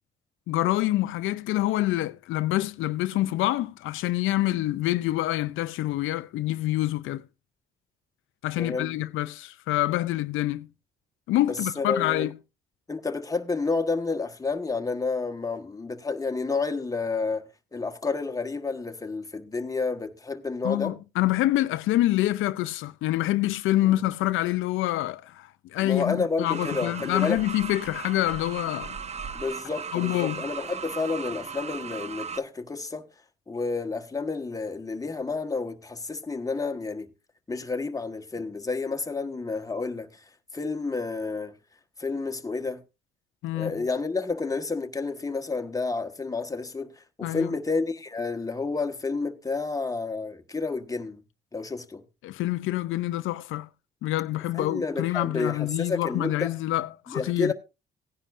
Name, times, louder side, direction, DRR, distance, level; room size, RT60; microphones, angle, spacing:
voice 1, 0.5-7.2 8.4-10.7 11.3-12.3 20.6-29.0 29.9-30.4 43.4-43.7 47.2-47.5 52.2-53.7 54.0-57.5, left 15 dB, 85° left, 0.5 m, -26 dB
voice 2, 8.6-8.9 11.5-12.3 12.9-17.4 17.7-20.9 23.8-24.0 25.8-27.4 29.4-33.1 33.5-37.1 37.5-40.2 40.5-41.5 42.0-42.8 43.5-51.2 51.5-52.0 54.5-56.5 57.1-57.5, left 4 dB, 15° left, 1.3 m, -30 dB
sound 1, 26.4-32.4, right 6 dB, 35° right, 0.6 m, -37 dB
16.5 x 10.0 x 2.5 m
cardioid pair, 90°, 20 cm